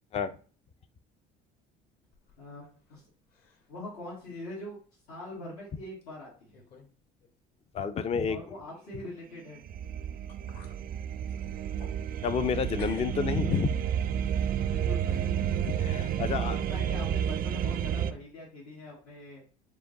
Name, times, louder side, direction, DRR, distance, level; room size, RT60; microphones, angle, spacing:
sound 1, 2.1-3.0 3.3-3.8 4.2-4.3 5.2-5.3 6.0-6.1 6.5-6.9 7.2-7.3 9.8-9.9 10.3-10.8 11.2-12.5 12.8-14.1, left 4 dB, 50° left, 1.4 m, -52 dB
voice 1, 2.4-3.0 3.7-4.8 5.1-6.6 8.3-9.6 14.7-15.3 16.3-19.4, left 1 dB, 75° left, 1.8 m, -43 dB
voice 2, 7.7-8.4 12.2-13.7 15.8-16.6, left 6 dB, 30° left, 0.4 m, -29 dB
sound 2, 9.3-18.1, right 9 dB, 50° right, 0.4 m, -31 dB
4.9 x 2.3 x 3.7 m
supercardioid pair, 75°, 20 cm